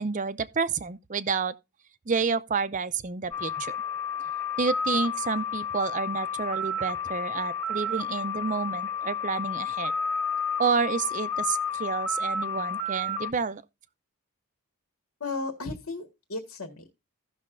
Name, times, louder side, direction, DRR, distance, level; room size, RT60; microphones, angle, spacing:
voice 1, 0.0-1.5 2.1-3.7 4.6-9.9 10.6-13.6, right 5 dB, 35° right, 0.5 m, -29 dB
sound 1, 3.3-13.3, left 4 dB, 15° left, 1.3 m, -31 dB
voice 2, 15.2-16.9, left 3 dB, 80° left, 1.7 m, -35 dB
16.0 x 6.3 x 2.6 m
head